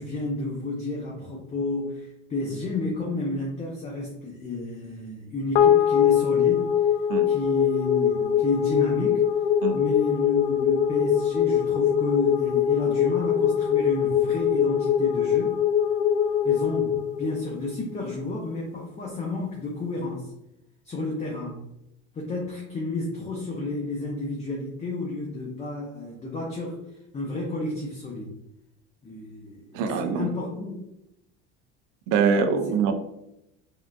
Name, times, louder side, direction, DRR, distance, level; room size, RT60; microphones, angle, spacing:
voice 1, 0.0-6.7 7.3-9.2 9.7-15.6 16.4-20.3 20.8-21.6 22.1-26.8 27.1-28.3 29.0-30.8, left 2 dB, 20° left, -2 dB, 0.6 m, -31 dB
sound 1, 5.5-18.1, left 9 dB, 80° left, 0.5 m, -22 dB
voice 2, 29.7-30.3 32.1-32.9, right 6 dB, 70° right, 7 dB, 0.5 m, -23 dB
3.6 x 2.4 x 2.3 m, 0.83 s
supercardioid pair, 100°, 34 cm